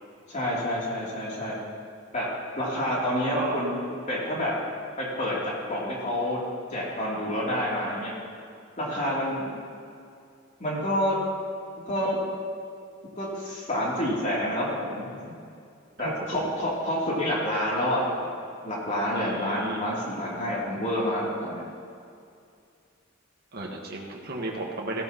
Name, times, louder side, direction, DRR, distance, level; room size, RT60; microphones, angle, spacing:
voice 1, 0.3-1.5 2.1-2.3 2.6-3.7 4.1-4.5 5.0-5.4 5.7-6.4 6.7-8.1 8.8-9.6 10.6-11.2 11.9-12.2 13.2-15.1 16.0-18.3 18.6-21.6, equal, 40° left, -6 dB, 3.0 m, -28 dB
voice 2, 19.1-19.8 23.5-25.0, right 2 dB, 55° right, -2 dB, 1.5 m, -33 dB
16.0 x 13.5 x 3.0 m, 2.4 s
head